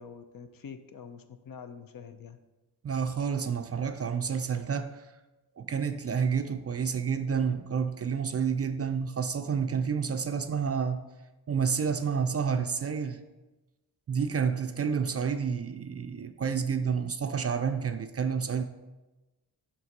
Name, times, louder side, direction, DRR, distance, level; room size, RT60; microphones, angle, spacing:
voice 1, 0.0-2.4, left 6 dB, 55° left, 0.6 m, -46 dB
voice 2, 2.8-5.0 5.6-11.0 11.5-13.2 14.1-18.6, right 6 dB, 35° right, 0.4 m, -29 dB
5.8 x 3.3 x 5.2 m
cardioid pair, 55°, 42 cm